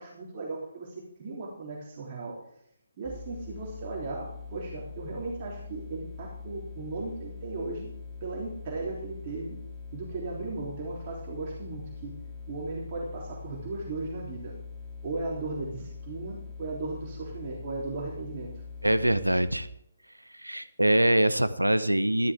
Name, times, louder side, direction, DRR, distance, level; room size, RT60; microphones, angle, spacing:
voice 1, 0.0-2.4 3.0-9.6 9.9-12.2 12.5-14.5 15.0-18.5, right 3 dB, 35° right, -3 dB, 3.5 m, -36 dB
sound 1, 3.0-19.7, left 4 dB, 5° left, 2.5 m, -43 dB
voice 2, 18.8-19.7 20.4-22.3, right 1 dB, 90° right, 15 dB, 1.0 m, -24 dB
13.5 x 13.5 x 3.7 m, 0.72 s
figure-of-eight pair, 140°, 0 cm